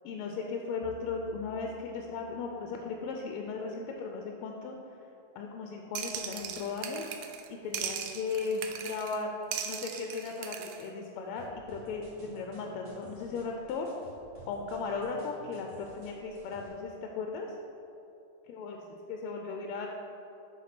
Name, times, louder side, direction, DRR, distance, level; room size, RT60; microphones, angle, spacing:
voice 1, 0.0-4.8 5.3-7.0 7.6-9.3 9.6-13.9 14.5-17.5 18.5-18.8 19.1-19.9, left 4 dB, 90° left, 2 dB, 1.5 m, -36 dB
sound 1, 0.8-3.6, equal, 20° left, 1.4 m, -55 dB
sound 2, 6.0-7.5 7.7-9.2 9.5-10.8, right 8 dB, 90° right, 1.5 m, -38 dB
sound 3, 11.4-16.7, right 2 dB, 60° right, 2.3 m, -54 dB
7.1 x 4.3 x 5.9 m, 3.0 s
omnidirectional pair, 2.4 m